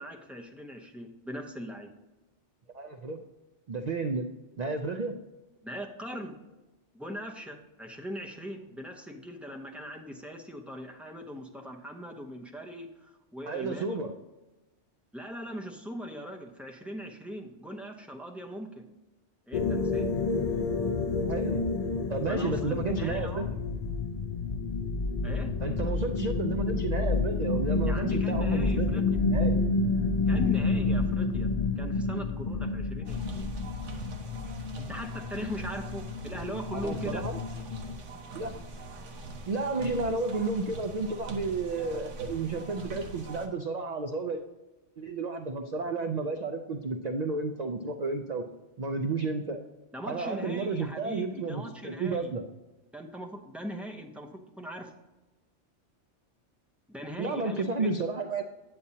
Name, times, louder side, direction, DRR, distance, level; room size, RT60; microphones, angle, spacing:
voice 1, 0.0-1.9 5.6-6.4 6.9-14.0 15.1-18.9 19.5-20.1 22.3-23.5 25.2-25.5 27.8-29.2 30.3-31.5 31.8-33.5 34.8-37.2 49.9-52.3 52.9-54.9 56.9-57.9, equal, ahead, 2 dB, 0.6 m, -40 dB
voice 2, 2.7-3.2 3.7-4.2 4.6-5.1 13.5-14.1 21.3-21.7 22.1-23.5 25.6-29.6 36.7-37.4 38.3-38.5 39.5-44.4 45.0-48.4 48.8-49.6 50.0-52.4 57.2-58.4, right 3 dB, 50° right, 5 dB, 0.5 m, -32 dB
sound 1, 19.5-38.0, left 3 dB, 60° left, 0.4 m, -29 dB
sound 2, 33.1-43.5, right 2 dB, 80° right, 1.3 m, -43 dB
8.7 x 8.4 x 2.8 m, 1.1 s
omnidirectional pair, 1.2 m